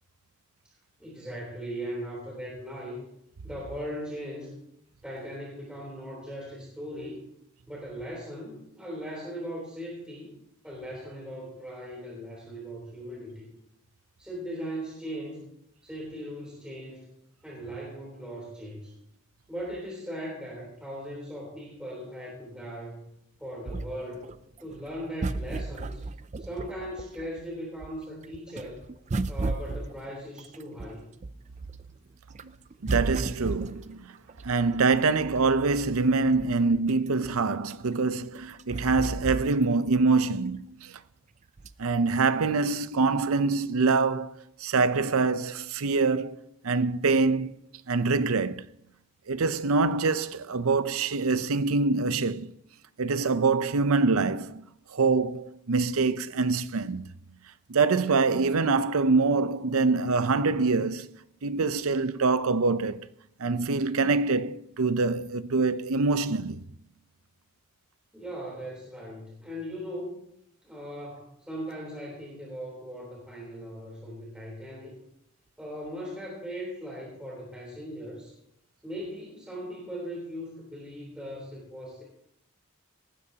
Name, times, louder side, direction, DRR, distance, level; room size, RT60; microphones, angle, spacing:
voice 1, 1.0-3.0 3.4-4.6 5.0-7.2 7.7-10.3 10.6-13.5 14.2-15.4 15.8-17.1 17.4-18.9 19.5-23.0 23.4-24.3 24.6-26.0 26.4-28.8 29.3-31.1 68.1-70.2 70.6-75.0 75.6-78.4 78.8-82.0, equal, 5° right, 3.5 m, -39 dB
sound 1, 23.6-27.4 27.8-31.9 32.3-35.2 35.8-35.9 36.1-40.0 40.3-40.4 41.6-42.0 42.6-42.7, right 3 dB, 35° right, 0.4 m, -34 dB
voice 2, 32.8-34.1 34.4-41.0 41.8-46.4 46.6-47.5 47.9-48.7 49.3-52.5 53.0-54.6 54.9-57.0 57.7-61.1 61.4-63.1 63.4-66.6, right 4 dB, 80° right, 0.6 m, -25 dB
19.0 x 14.5 x 2.9 m
head